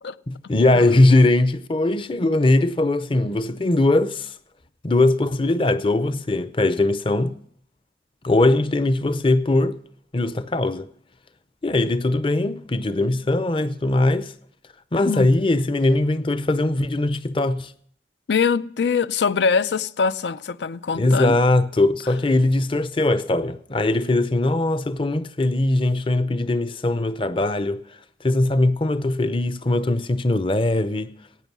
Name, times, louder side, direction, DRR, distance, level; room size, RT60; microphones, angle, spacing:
voice 1, 0.3-4.3 4.8-7.4 8.2-9.8 10.1-10.9 11.6-14.3 14.9-17.7 20.9-27.8 28.2-31.1, left 2 dB, 30° left, 0.6 m, -20 dB
voice 2, 18.3-21.4, left 5 dB, 80° left, 0.5 m, -23 dB
16.5 x 9.1 x 6.0 m
head